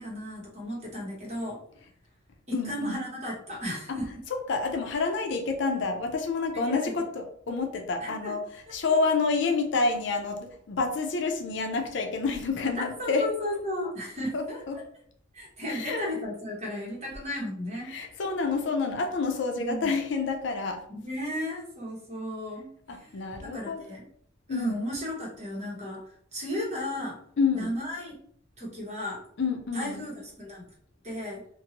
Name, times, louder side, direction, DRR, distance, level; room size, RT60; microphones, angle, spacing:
voice 1, 0.0-1.6 2.5-4.1 6.5-6.9 8.0-8.3 12.8-14.6 15.3-17.9 19.6-19.9 20.9-24.0 24.5-27.2 27.5-28.1 28.6-29.2 29.7-30.6 31.0-31.4, left 1 dB, 35° right, -4 dB, 1.3 m, -34 dB
voice 2, 2.5-3.0 4.5-13.2 14.3-14.8 15.7-16.0 17.9-20.8 22.9-23.8 24.5-24.8 27.4-27.7 29.4-30.0, left 4 dB, 70° left, 4 dB, 0.5 m, -28 dB
2.6 x 2.5 x 2.8 m, 0.63 s
head